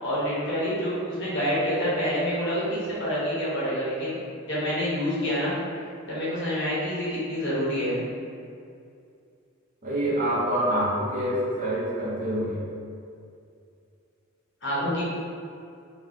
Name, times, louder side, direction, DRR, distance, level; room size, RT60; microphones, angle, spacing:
voice 1, 0.0-4.2 4.5-5.5 6.1-8.0 14.6-15.0, equal, 60° left, -8 dB, 1.2 m, -27 dB
voice 2, 9.8-12.6, right 1 dB, 40° right, -7 dB, 0.8 m, -26 dB
3.1 x 2.2 x 3.8 m, 2.4 s
head